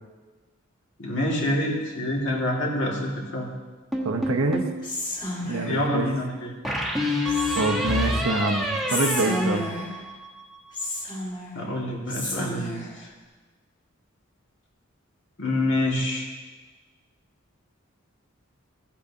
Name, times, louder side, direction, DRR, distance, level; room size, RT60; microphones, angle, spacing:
voice 1, 1.0-3.5 5.6-6.5 11.5-13.1 15.4-16.2, left 1 dB, 60° left, -2 dB, 2.2 m, -27 dB
sound 1, 3.9-4.8 6.6-10.4, left 1 dB, ahead, 1.1 m, -27 dB
voice 2, 4.0-4.6 5.4-6.2 7.6-9.7, right 2 dB, 80° right, 5 dB, 0.8 m, -26 dB
Whispering, 4.8-5.9 7.3-8.0 8.9-10.1 10.7-11.7 12.1-12.9, left 1 dB, 20° left, 2.1 m, -31 dB
15.0 x 8.4 x 2.8 m, 1.3 s
head